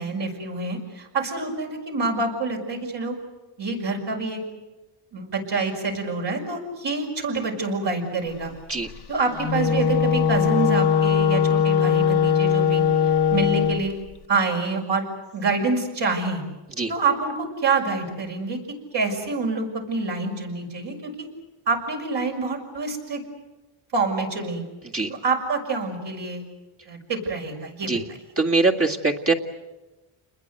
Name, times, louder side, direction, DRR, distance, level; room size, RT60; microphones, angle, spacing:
voice 1, 0.0-3.1 3.6-4.4 5.1-8.5 9.1-14.0 14.3-15.0 15.3-16.4 16.9-18.6 18.9-21.3 21.7-23.2 23.9-24.6 25.1-26.4 26.9-28.2, right 3 dB, 60° right, 2 dB, 6.5 m, -26 dB
Wind instrument woodwind instrument, 9.3-13.9, left 7 dB, 50° left, 1.2 m, -20 dB
voice 2, 28.4-29.3, right 3 dB, 30° right, -1 dB, 2.1 m, -22 dB
29.5 x 21.5 x 7.9 m, 1.1 s
wide cardioid pair, 120°, 49 cm